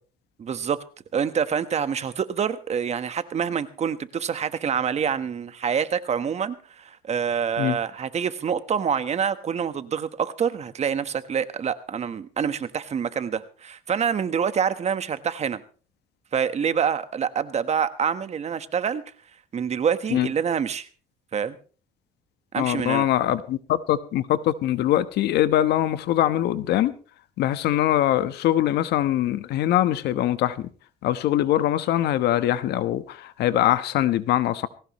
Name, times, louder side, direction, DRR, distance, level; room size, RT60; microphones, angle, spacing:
voice 1, 0.4-0.8 1.1-15.6 16.3-19.0 19.5-20.9 21.3-21.6 22.5-23.1, right 7 dB, 40° right, 12 dB, 1.3 m, -26 dB
voice 2, 22.5-26.9 27.4-30.7 31.0-34.7, left 13 dB, 75° left, 13 dB, 1.2 m, -22 dB
20.0 x 17.5 x 3.1 m, 0.38 s
cardioid pair, 110°, 17 cm